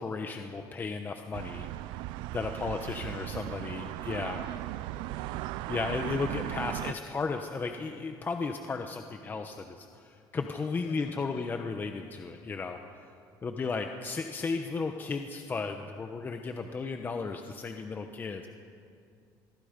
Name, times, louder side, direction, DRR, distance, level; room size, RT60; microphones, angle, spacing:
voice 1, 0.0-1.7 2.3-4.4 5.7-12.8 13.4-18.5, left 4 dB, 25° left, 5 dB, 1.0 m, -34 dB
sound 1, 1.3-6.9, right 17 dB, 85° right, 0.4 m, -37 dB
voice 2, 2.6-3.5 3.9-6.0 10.8-11.6 13.5-13.8, left 4 dB, 60° left, 2 dB, 5.4 m, -54 dB
25.0 x 23.0 x 5.2 m, 2.4 s
cardioid pair, 140°, 8 cm